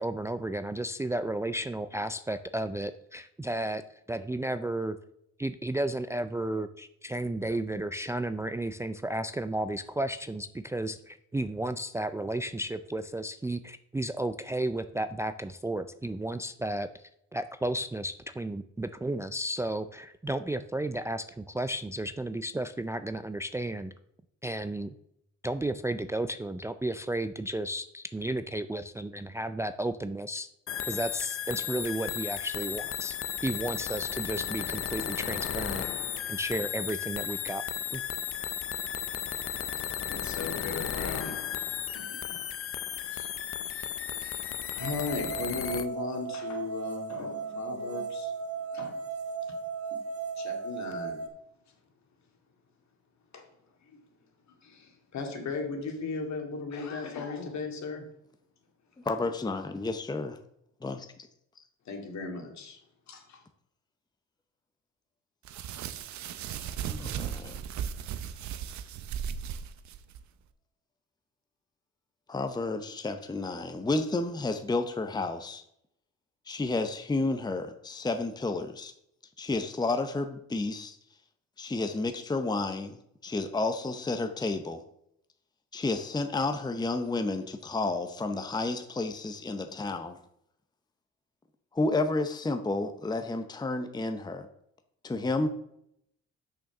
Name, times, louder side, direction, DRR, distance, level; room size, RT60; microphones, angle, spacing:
voice 1, 0.0-3.8 4.1-5.0 5.4-17.0 17.3-23.9 24.4-24.9 25.4-30.5 30.9-33.2 33.4-35.9 36.3-37.6 37.9-38.0, right 1 dB, 10° right, 10 dB, 0.4 m, -33 dB
sound 1, 30.7-45.9, left 9 dB, 45° left, 0.7 m, -34 dB
voice 2, 40.1-41.4 41.9-42.4 43.1-43.3 43.6-48.3 48.7-49.0 50.4-51.2 51.7-51.8 53.3-53.5 53.8-54.1 54.6-58.1 61.9-62.8 63.1-63.4, left 4 dB, 65° left, 3 dB, 2.3 m, -37 dB
sound 2, 44.8-51.3, right 5 dB, 50° right, 1.4 m, -36 dB
voice 3, 59.0-60.4 60.8-61.1 66.8-67.6 72.3-75.6 76.5-78.9 79.4-81.0 81.6-84.8 85.7-90.2 91.7-94.5 95.0-95.5, left 3 dB, 15° left, 7 dB, 0.7 m, -31 dB
sound 3, 65.4-70.2, right 8 dB, 70° right, 0.7 m, -36 dB
6.5 x 6.3 x 5.9 m, 0.75 s
cardioid pair, 90°, 30 cm